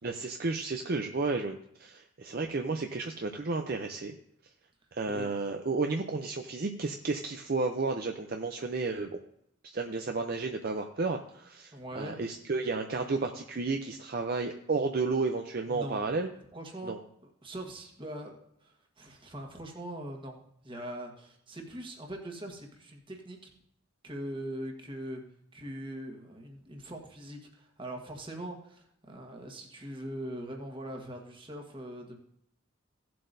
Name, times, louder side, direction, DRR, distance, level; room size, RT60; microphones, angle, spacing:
voice 1, 0.0-4.1 4.9-9.2 9.7-16.3 16.8-17.0, right 3 dB, 45° right, 4 dB, 0.5 m, -32 dB
voice 2, 11.7-12.2 15.7-16.1 16.5-17.0 17.4-23.5 24.0-25.2 25.5-32.2, right 1 dB, 25° right, 2 dB, 1.4 m, -42 dB
16.5 x 7.6 x 2.6 m, 0.72 s
head